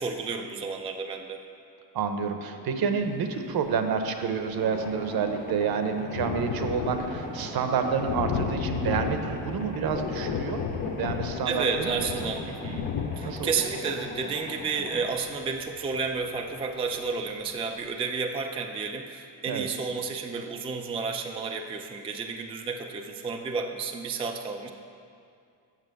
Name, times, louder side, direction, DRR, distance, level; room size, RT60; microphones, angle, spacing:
voice 1, 0.0-1.4 11.4-24.7, right 4 dB, 15° right, 3 dB, 0.3 m, -31 dB
voice 2, 1.9-12.3 12.6-12.8 13.2-13.6 19.5-19.7, right 6 dB, 60° right, 6 dB, 0.8 m, -29 dB
Thunder, 3.7-3.8 4.0-16.6 17.1-17.2 17.5-17.6, left 6 dB, 45° left, 0.7 m, -34 dB
sound 1, 4.6-15.0, left 2 dB, 20° left, 1.0 m, -40 dB
7.5 x 6.1 x 7.7 m, 2.4 s
cardioid pair, 140°, 42 cm